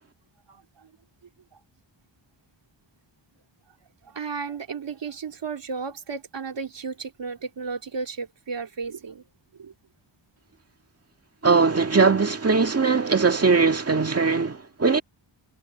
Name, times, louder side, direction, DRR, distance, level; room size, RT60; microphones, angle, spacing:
voice 1, 4.1-9.2 9.6-9.7, right 5 dB, 65° right, 3.3 m, -33 dB
voice 2, 11.4-15.0, right 4 dB, 30° right, 2.0 m, -20 dB
wide cardioid pair, 110°, 47 cm